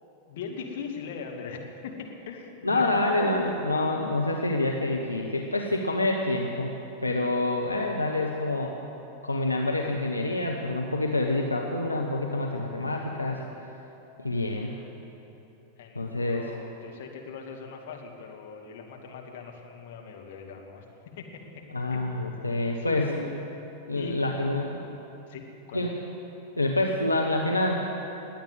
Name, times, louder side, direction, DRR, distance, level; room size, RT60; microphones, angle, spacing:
voice 1, 0.3-3.6 15.8-20.9 21.2-21.4 21.9-23.4 23.9-24.2 25.3-25.9, left 5 dB, 55° left, 1 dB, 2.1 m, -40 dB
voice 2, 2.6-6.7 7.0-8.7 9.2-13.4 14.2-14.8 15.9-16.4 21.7-23.1 23.9-24.8 25.7-25.9 26.6-27.9, left 2 dB, 85° left, 1 dB, 1.0 m, -27 dB
20.5 x 8.8 x 8.0 m, 3.0 s
figure-of-eight pair, 90°, 0 cm